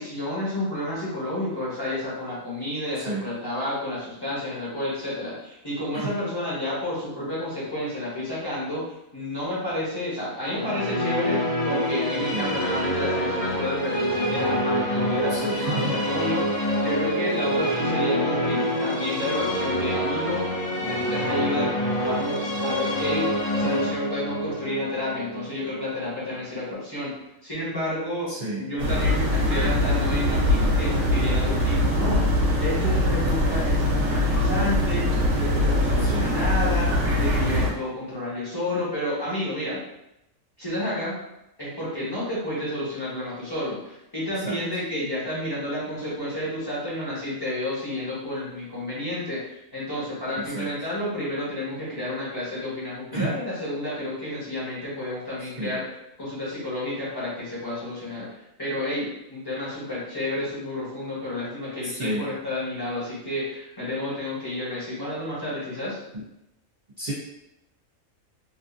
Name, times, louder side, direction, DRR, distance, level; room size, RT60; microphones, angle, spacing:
voice 1, 0.0-8.8 9.1-20.4 20.8-21.7 22.0-27.1 27.4-28.3 28.6-39.8 40.6-41.2 41.6-55.8 56.2-58.3 58.6-66.0, left 1 dB, 20° left, -8 dB, 0.8 m, -30 dB
sound 1, 10.4-26.4, equal, 85° left, 1.3 m, -26 dB
voice 2, 15.3-16.0 23.6-23.9 28.3-28.6 36.0-36.3 44.4-44.8 50.4-50.7 53.1-53.3 55.6-55.8 61.8-62.3 66.1-66.2 67.0-67.1, right 2 dB, 80° right, -7 dB, 0.4 m, -31 dB
sound 2, 28.8-37.7, left 1 dB, 65° right, 1.0 m, -22 dB
2.8 x 2.4 x 2.4 m, 0.87 s
omnidirectional pair, 1.4 m